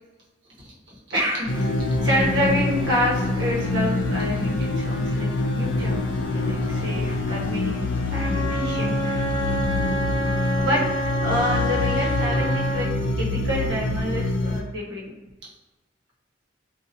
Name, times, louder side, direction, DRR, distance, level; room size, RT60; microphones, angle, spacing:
voice 1, 1.1-6.0 6.3-9.2 10.6-10.9 11.2-12.9 13.2-15.1, equal, 70° right, -5 dB, 1.1 m, -28 dB
sound 1, 1.5-14.6, left 2 dB, 90° left, 0.5 m, -25 dB
Car / Engine starting / Idling, 6.5-12.3, equal, 25° right, 0.8 m, -42 dB
Wind instrument woodwind instrument, 8.1-13.0, right 1 dB, 25° left, 0.4 m, -28 dB
2.9 x 2.5 x 3.9 m, 1.1 s
head